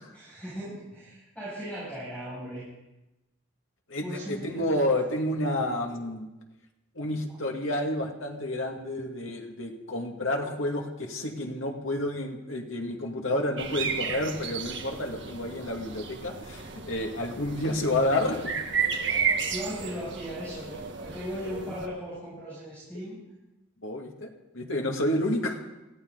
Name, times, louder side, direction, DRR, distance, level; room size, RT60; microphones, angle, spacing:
voice 1, 0.1-2.7 4.0-4.7 19.5-23.2, equal, 5° left, -10 dB, 6.6 m, -37 dB
voice 2, 3.9-6.2 6.9-18.5 23.8-24.3 24.5-25.6, left 1 dB, 85° left, 1 dB, 2.4 m, -30 dB
sound 1, 13.6-21.9, right 6 dB, 65° right, 1.5 m, -33 dB
22.0 x 15.0 x 4.0 m, 0.98 s
head